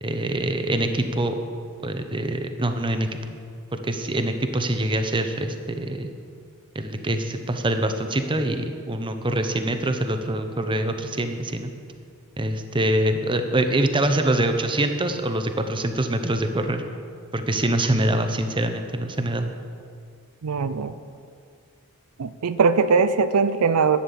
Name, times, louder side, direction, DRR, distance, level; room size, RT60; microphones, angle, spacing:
voice 1, 0.0-1.4 1.8-3.4 3.7-6.1 6.7-11.7 12.4-16.8 17.3-19.5, right 1 dB, 20° right, 7 dB, 0.8 m, -24 dB
voice 2, 20.4-20.9 22.2-24.0, right 5 dB, 80° right, 12 dB, 0.5 m, -20 dB
11.0 x 9.4 x 7.1 m, 2.3 s
head